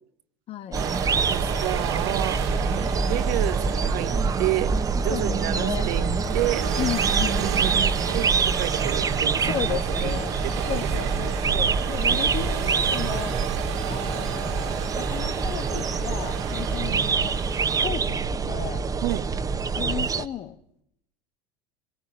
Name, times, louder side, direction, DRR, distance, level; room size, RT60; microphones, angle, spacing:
voice 1, 0.5-0.8 5.1-5.9 6.8-7.6 9.4-10.4 10.7-13.3 13.9-17.4 17.8-18.9 19.8-20.5, left 10 dB, 45° left, 1.6 m, -34 dB
sound 1, 0.7-20.3, right 5 dB, 25° right, 1.6 m, -25 dB
sound 2, 0.7-17.9, right 10 dB, 80° right, 2.6 m, -35 dB
voice 2, 1.3-4.1 4.4-4.7 5.0-6.1 6.3-6.7 7.4-10.9 11.2-11.3 12.1-12.5 16.9-17.0 19.0-19.2, right 17 dB, 65° right, 1.5 m, -31 dB
25.0 x 24.0 x 9.8 m
hypercardioid pair, 80°, 14 cm